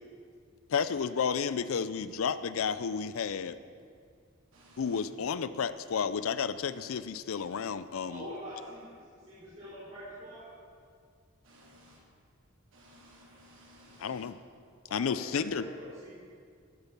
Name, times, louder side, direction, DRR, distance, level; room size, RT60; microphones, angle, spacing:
voice 1, 0.7-3.6 4.8-8.2 14.0-14.4 14.9-15.6, left 6 dB, 90° left, 14 dB, 0.5 m, -31 dB
voice 2, 4.5-5.0 11.4-12.0 12.7-14.3, equal, 75° right, -4 dB, 2.9 m, -57 dB
voice 3, 8.1-9.0 9.2-10.5 14.8-16.1, equal, 35° right, -12 dB, 3.8 m, -44 dB
13.5 x 8.3 x 6.9 m, 2.2 s
head